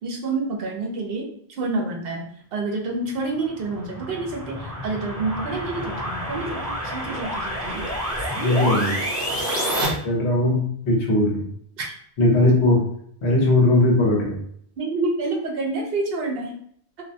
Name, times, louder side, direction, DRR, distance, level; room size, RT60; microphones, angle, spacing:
voice 1, 0.0-7.9 11.8-11.9 14.8-16.5, right 3 dB, 65° right, 1 dB, 0.7 m, -28 dB
sound 1, 3.3-9.9, equal, 15° right, 0.6 m, -28 dB
voice 2, 8.4-9.0 10.0-11.5 12.2-12.9 13.2-14.4, left 1 dB, 85° left, -2 dB, 1.1 m, -19 dB
2.5 x 2.1 x 2.6 m, 0.66 s
omnidirectional pair, 1.1 m